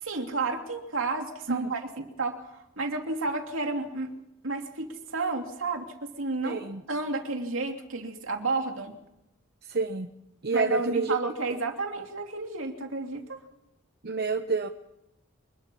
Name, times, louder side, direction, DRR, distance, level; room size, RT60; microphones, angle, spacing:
voice 1, 0.0-4.1 4.4-6.6 6.9-9.0 10.5-13.4, right 3 dB, 70° right, 4 dB, 2.8 m, -31 dB
voice 2, 6.4-6.8 9.6-10.1 10.4-11.2 11.5-11.6 14.0-14.7, right 3 dB, 50° right, 7 dB, 0.9 m, -28 dB
24.0 x 21.5 x 5.5 m, 0.88 s
head